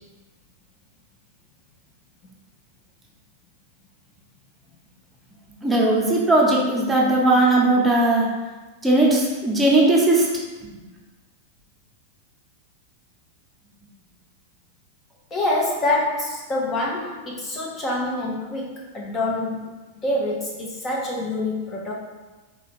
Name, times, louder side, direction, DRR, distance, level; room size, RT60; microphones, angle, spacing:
voice 1, 5.6-8.3 8.8-10.3, right 2 dB, 10° right, -3 dB, 1.0 m, -18 dB
voice 2, 15.3-19.7 20.0-21.9, left 2 dB, 25° left, -3 dB, 0.7 m, -26 dB
3.9 x 2.7 x 4.3 m, 1.2 s
hypercardioid pair, 110°, 0 cm